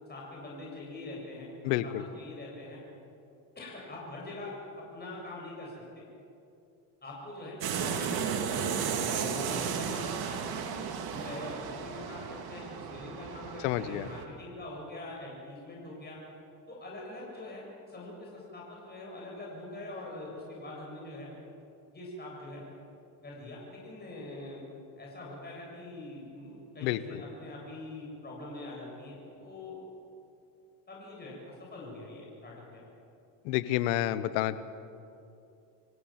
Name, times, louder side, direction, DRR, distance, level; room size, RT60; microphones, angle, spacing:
voice 1, 0.1-2.8 3.6-6.0 7.0-8.5 9.0-16.2 16.7-21.3 21.9-22.7 23.2-24.6 24.9-29.8 30.9-32.8, left 2 dB, 20° left, -3 dB, 7.6 m, -44 dB
voice 2, 1.6-2.0 13.6-14.1 26.8-27.2 33.4-34.6, left 14 dB, 75° left, 14 dB, 1.3 m, -29 dB
sound 1, 7.6-14.2, right 7 dB, 50° right, 2.6 m, -34 dB
27.0 x 16.0 x 7.5 m, 2.6 s
supercardioid pair, 105°, 49 cm